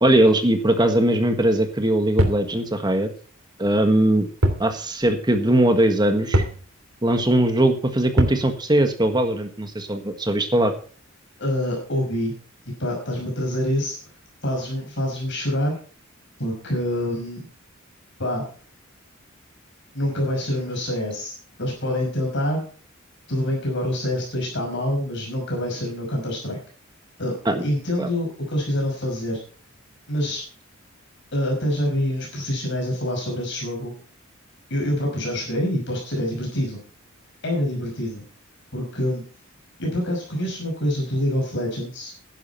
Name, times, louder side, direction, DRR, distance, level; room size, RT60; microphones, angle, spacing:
voice 1, 0.0-3.1 3.6-4.3 4.6-6.4 7.0-10.7 27.4-27.6 28.0-28.1, right 1 dB, 20° right, 6 dB, 1.5 m, -20 dB
sound 1, 2.2-2.5 4.4-4.7 5.0-5.1 6.3-6.6 8.2-8.5, right 1 dB, 90° right, 3.1 m, -21 dB
voice 2, 11.4-12.3 12.8-14.0 14.4-15.8 16.4-17.5 18.2-18.5 19.9-22.7 23.3-26.6 27.2-27.3 27.6-29.4 30.1-30.4 31.3-33.9 34.7-36.8 37.4-38.2 38.7-39.2 39.8-42.1, left 1 dB, 60° left, 0 dB, 5.7 m, -26 dB
12.0 x 11.0 x 4.5 m, 0.41 s
head